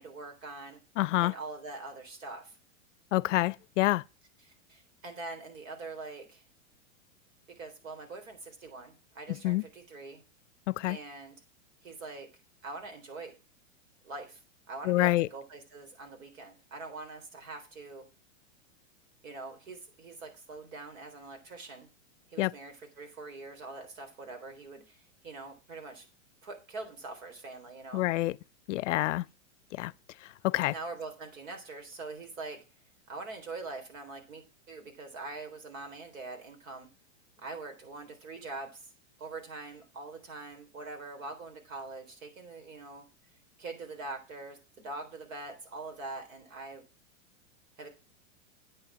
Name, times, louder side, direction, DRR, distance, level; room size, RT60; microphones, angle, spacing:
voice 1, 0.0-0.8 1.2-2.6 4.4-6.4 7.5-10.2 10.9-11.4 11.8-12.3 12.6-13.3 14.0-14.4 14.7-18.1 19.2-21.9 22.3-26.1 26.4-28.1 30.7-32.6 33.1-36.9 37.4-38.9 39.2-43.1 43.6-46.8 47.8-47.9, right 3 dB, 75° right, 3.9 m, -43 dB
voice 2, 1.0-1.3 3.1-4.0 9.3-9.6 10.7-11.0 14.8-15.3 22.4-22.5 27.9-28.4 28.7-29.3 29.7-29.9 30.4-30.7, left 17 dB, 65° left, 0.5 m, -27 dB
8.8 x 6.8 x 6.1 m
supercardioid pair, 150°, 40 cm